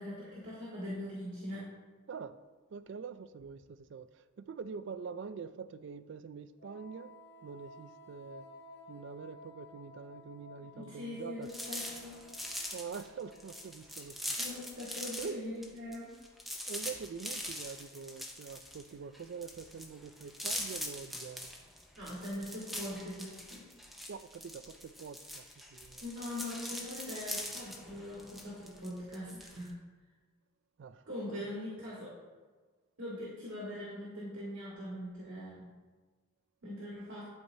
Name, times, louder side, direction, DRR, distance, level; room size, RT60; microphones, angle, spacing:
voice 1, 0.0-1.7 10.7-12.2 14.4-16.1 22.0-23.7 26.0-29.7 31.1-32.1 33.0-35.7 36.6-37.3, left 1 dB, 75° right, 1.9 m, -42 dB
voice 2, 2.7-7.1 7.4-8.5 8.9-11.5 12.7-14.4 15.2-15.5 16.7-21.5 24.1-25.4 25.7-26.0 30.8-31.0, right 6 dB, 55° right, 0.3 m, -45 dB
Wind instrument woodwind instrument, 6.6-13.9, left 2 dB, 50° left, 0.8 m, -54 dB
sound 1, 11.4-15.4 15.6-29.7, equal, ahead, 0.6 m, -42 dB
11.5 x 4.6 x 2.8 m
head